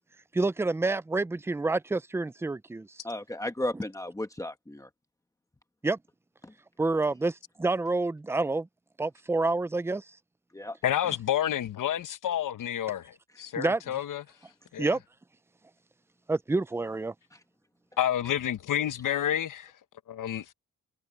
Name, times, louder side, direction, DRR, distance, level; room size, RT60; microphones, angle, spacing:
voice 1, 0.3-2.9 5.8-6.0 6.8-8.7 9.0-10.0 13.6-13.8 14.8-15.0 16.3-17.1, right 3 dB, 10° right, 0.3 m, -28 dB
voice 2, 3.0-4.9 6.4-6.5 10.5-10.8, left 1 dB, 10° left, 1.2 m, -34 dB
voice 3, 10.8-14.2 14.7-14.9 18.0-19.7 20.1-20.5, left 10 dB, 85° left, 1.0 m, -29 dB
wide cardioid pair, 175°, 31 cm